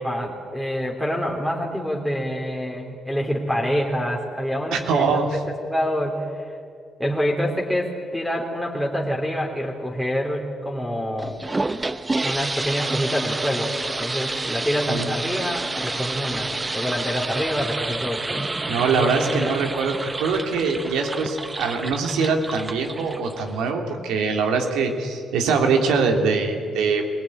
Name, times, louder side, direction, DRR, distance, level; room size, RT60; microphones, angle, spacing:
voice 1, 0.0-5.2 5.6-6.5 7.0-11.4 12.2-13.7 14.0-18.2 18.9-19.5, equal, 5° left, -2 dB, 3.4 m, -26 dB
voice 2, 4.7-5.4 14.9-15.1 18.7-27.0, right 4 dB, 90° right, 3 dB, 3.2 m, -23 dB
sound 1, 11.2-23.7, right 2 dB, 20° right, 0.8 m, -29 dB
22.0 x 19.0 x 9.9 m, 2.2 s
cardioid pair, 90°, 0 cm